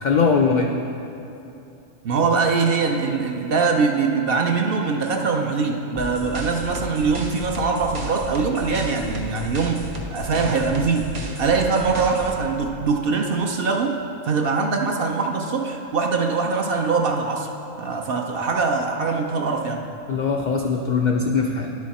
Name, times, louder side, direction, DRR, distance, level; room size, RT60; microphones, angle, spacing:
voice 1, 0.0-0.7 20.1-21.8, left 5 dB, 85° left, 2 dB, 0.4 m, -21 dB
voice 2, 2.0-9.8 10.1-11.1 11.4-14.0 14.2-17.5 17.8-19.8, right 4 dB, 60° right, 2 dB, 0.7 m, -22 dB
sound 1, 6.0-12.3, equal, 80° right, 1.4 m, -33 dB
10.5 x 6.4 x 4.2 m, 2.8 s
omnidirectional pair, 1.3 m